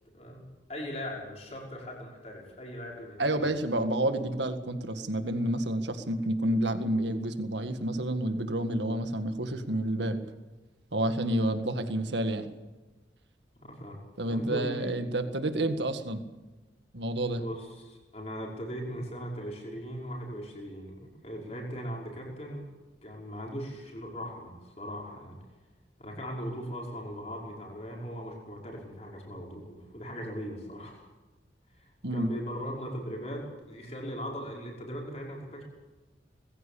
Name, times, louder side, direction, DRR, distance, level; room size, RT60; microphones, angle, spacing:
voice 1, 0.7-3.5 11.4-11.5 13.6-15.0 17.4-22.7 23.0-25.4 26.0-31.1 31.8-35.6, equal, 35° left, -1 dB, 5.7 m, -39 dB
voice 2, 3.2-10.2 10.9-12.5 14.2-16.2 16.9-17.4 32.0-32.3, right 1 dB, 75° right, 8 dB, 1.8 m, -29 dB
21.0 x 15.5 x 8.6 m, 1.2 s
head